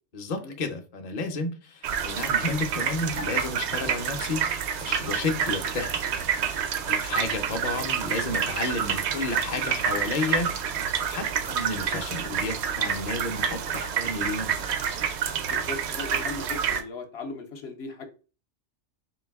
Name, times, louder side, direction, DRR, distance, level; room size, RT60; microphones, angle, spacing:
voice 1, 0.1-5.9 6.3-10.5 11.1-14.7, left 3 dB, 45° left, 0.6 m, -32 dB
sound 1, 1.8-16.8, right 7 dB, 75° right, 0.8 m, -28 dB
voice 2, 15.4-18.1, left 3 dB, 65° left, 0.9 m, -38 dB
3.9 x 2.6 x 3.5 m
omnidirectional pair, 1.2 m